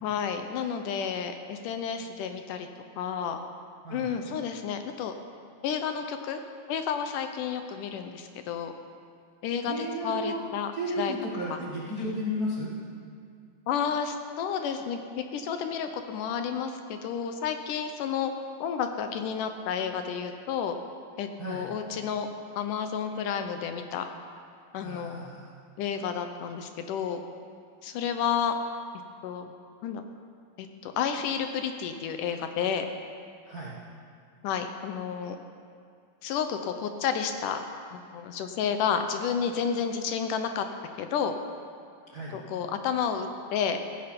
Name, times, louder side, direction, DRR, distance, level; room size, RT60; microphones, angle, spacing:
voice 1, 0.0-2.7 3.0-3.4 3.9-5.1 5.6-6.4 6.7-8.7 9.4-10.7 11.0-11.1 11.5-11.6 12.0-12.1 13.7-15.0 15.3-18.3 18.6-20.8 21.2-22.3 22.6-24.1 24.7-25.3 25.8-27.2 27.8-28.6 29.2-29.5 29.8-30.0 30.6-32.9 34.4-35.4 36.2-37.6 37.9-40.7 41.0-41.3 42.3-43.8, left 7 dB, 75° left, 7 dB, 2.1 m, -31 dB
voice 2, 9.7-10.4 10.7-12.7 21.4-21.7 24.8-25.5 33.5-33.8 42.1-42.4, equal, 45° right, -5 dB, 1.3 m, -33 dB
15.5 x 15.0 x 5.2 m, 2.3 s
omnidirectional pair, 4.0 m